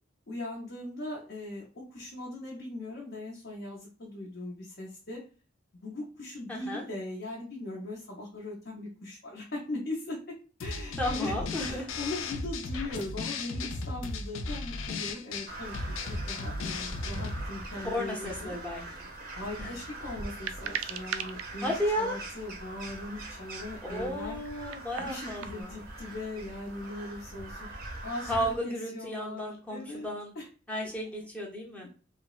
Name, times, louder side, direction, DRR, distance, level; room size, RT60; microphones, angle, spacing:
voice 1, 0.3-5.2 5.8-10.3 10.6-15.8 16.0-18.6 19.3-24.4 25.0-27.7 28.0-30.1 30.3-30.5, left 2 dB, 55° left, -4 dB, 0.7 m, -39 dB
voice 2, 6.5-6.8 11.0-11.9 17.8-18.8 19.6-19.7 21.6-22.2 23.9-25.7 28.3-30.3 30.7-31.9, equal, 5° left, -3 dB, 0.6 m, -33 dB
sound 1, 10.6-17.5, left 3 dB, 85° left, 0.4 m, -36 dB
Crow, 15.5-28.6, right 2 dB, 50° right, 0.6 m, -42 dB
sound 2, 20.3-21.4 22.4-22.5 24.4-25.6, right 8 dB, 90° right, 0.3 m, -37 dB
3.3 x 2.0 x 2.3 m, 0.36 s
head